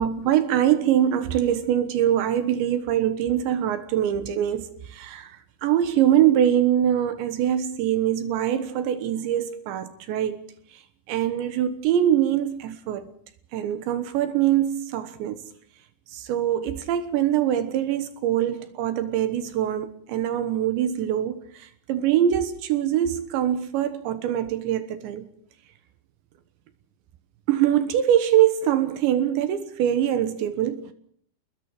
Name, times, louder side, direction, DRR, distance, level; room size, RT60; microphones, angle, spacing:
voice 1, 0.0-5.3 5.6-10.4 11.1-13.1 13.5-15.4 16.1-25.3 27.5-30.9, right 10 dB, 80° right, 3.5 m, -23 dB
29.0 x 21.0 x 4.8 m
omnidirectional pair, 5.3 m